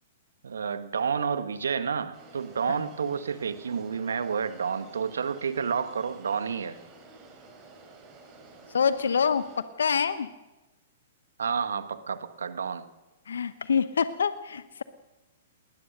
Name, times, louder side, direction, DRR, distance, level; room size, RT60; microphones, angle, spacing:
voice 1, 0.4-6.8 11.4-12.9, right 6 dB, 75° right, 11 dB, 1.5 m, -30 dB
sound 1, 2.1-9.6, right 3 dB, 30° right, 7.4 m, -51 dB
voice 2, 8.7-10.3 13.3-14.8, left 6 dB, 75° left, 13 dB, 0.9 m, -26 dB
21.0 x 19.5 x 6.6 m, 1.1 s
hypercardioid pair, 115°, 0 cm